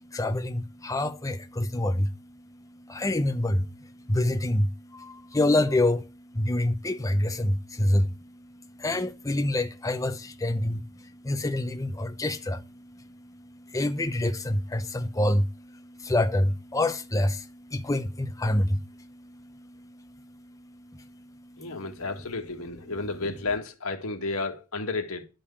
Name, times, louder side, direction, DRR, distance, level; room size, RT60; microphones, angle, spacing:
voice 1, 0.0-22.3, left 1 dB, 15° left, 0.7 m, -28 dB
voice 2, 21.6-25.2, left 3 dB, 85° left, 2.1 m, -32 dB
12.0 x 5.2 x 8.5 m
head